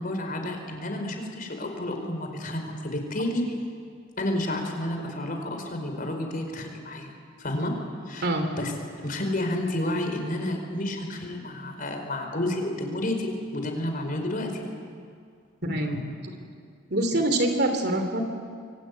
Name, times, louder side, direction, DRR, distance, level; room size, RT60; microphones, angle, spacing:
voice 1, 0.0-3.4 4.2-7.1 7.4-7.7 8.1-8.3 8.6-8.7 9.0-14.6, left 1 dB, 45° left, 4 dB, 4.7 m, -30 dB
voice 2, 15.6-16.3 16.9-18.2, right 1 dB, 55° right, 6 dB, 3.2 m, -25 dB
25.5 x 24.0 x 9.5 m, 2.2 s
head